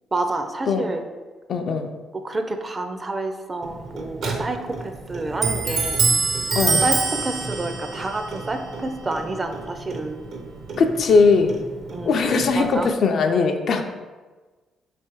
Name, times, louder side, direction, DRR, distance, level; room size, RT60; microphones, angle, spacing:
voice 1, 0.1-1.0 2.1-6.0 6.8-10.2 11.9-12.2 12.5-12.9, right 2 dB, 25° right, 6 dB, 0.4 m, -28 dB
voice 2, 1.5-1.9 6.6-6.8 10.8-11.5 12.1-13.8, left 4 dB, 60° left, 5 dB, 0.4 m, -19 dB
Clock, 3.6-12.9, right 4 dB, 65° right, 0.6 m, -27 dB
3.3 x 3.2 x 4.5 m, 1.3 s
cardioid pair, 90°, 0 cm